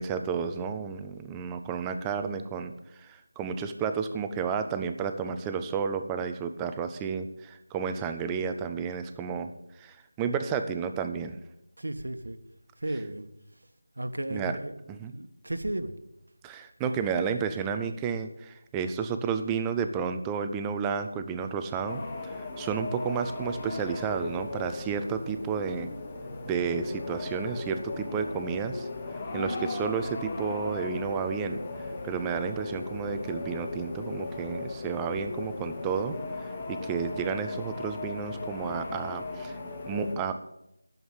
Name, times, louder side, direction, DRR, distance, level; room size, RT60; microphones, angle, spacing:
voice 1, 0.0-9.5 9.8-11.4 14.3-14.6 14.9-15.1 16.4-25.9 26.4-28.9 29.3-31.6 32.0-39.6 39.9-40.4, right 6 dB, 5° right, 0.4 m, -31 dB
voice 2, 11.8-12.4 12.8-13.3 14.0-14.8 15.1-16.0, right 1 dB, 85° right, 1.3 m, -34 dB
sound 1, 21.9-40.2, left 3 dB, 15° left, 0.8 m, -37 dB
11.0 x 7.2 x 8.1 m
figure-of-eight pair, 180°, 0 cm